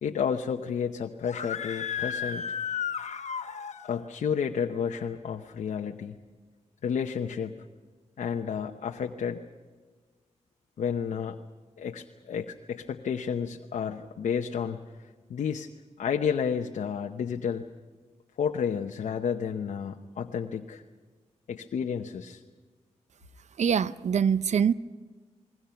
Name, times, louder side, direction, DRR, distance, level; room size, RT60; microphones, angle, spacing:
voice 1, 0.0-2.4 3.8-6.2 6.8-7.6 8.2-9.4 10.8-11.4 11.8-14.8 15.3-15.7 16.0-17.7 18.4-20.8 21.5-22.4, left 7 dB, 85° left, 4 dB, 0.9 m, -31 dB
Screaming, 1.2-4.0, left 7 dB, 70° left, 1.2 m, -33 dB
voice 2, 23.6-24.7, right 7 dB, 70° right, 16 dB, 0.6 m, -24 dB
29.0 x 21.0 x 5.8 m, 1.4 s
cardioid pair, 65°, 12 cm